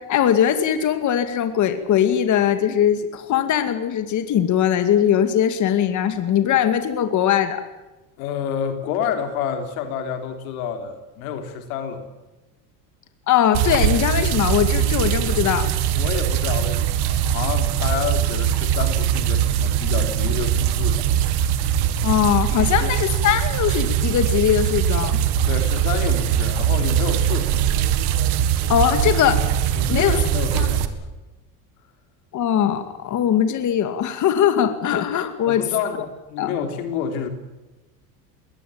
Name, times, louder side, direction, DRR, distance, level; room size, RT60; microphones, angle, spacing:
voice 1, 0.0-7.6 13.3-15.7 22.0-25.2 28.7-29.4 29.9-30.2 30.5-30.7 32.3-35.6 36.4-36.5, left 9 dB, 45° left, 9 dB, 2.2 m, -20 dB
voice 2, 8.2-12.1 16.0-21.5 22.8-23.0 25.5-27.5 29.0-29.2 29.7-31.0 35.5-37.3, left 7 dB, 90° left, 6 dB, 3.6 m, -29 dB
sound 1, 13.5-30.9, right 10 dB, 70° right, 2.3 m, -21 dB
21.5 x 19.0 x 8.8 m, 1.1 s
supercardioid pair, 120°, 42 cm